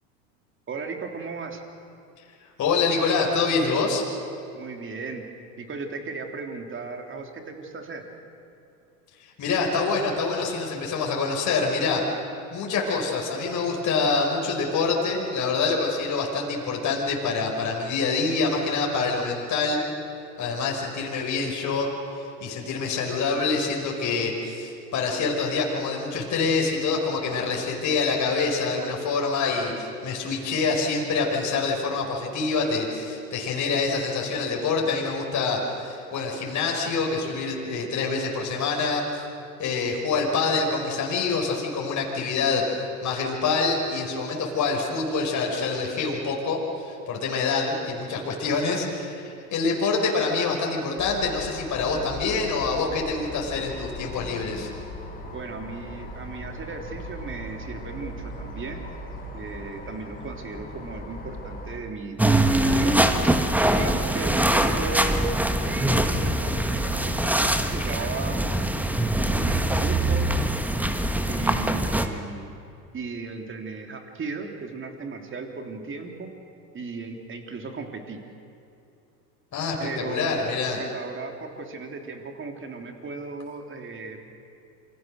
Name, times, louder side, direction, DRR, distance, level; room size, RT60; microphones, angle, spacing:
voice 1, 0.7-1.6 4.5-5.3 5.6-8.0 55.3-58.9 59.3-63.0 63.8-68.5 69.2-70.4 71.3-72.5 72.9-76.3 76.7-78.2 79.8-80.4 80.8-84.2, right 4 dB, 25° right, 4 dB, 3.4 m, -36 dB
voice 2, 2.6-4.1 9.2-12.1 12.5-19.8 20.4-21.9 22.2-39.3 39.6-54.7 79.5-80.8, left 4 dB, 35° left, -1 dB, 5.2 m, -26 dB
sound 1, 51.0-61.8, left 1 dB, 15° left, 4.8 m, -39 dB
sound 2, 62.2-72.1, right 1 dB, 5° right, 1.5 m, -23 dB
28.0 x 24.5 x 6.5 m, 2.7 s
hypercardioid pair, 95°, 50 cm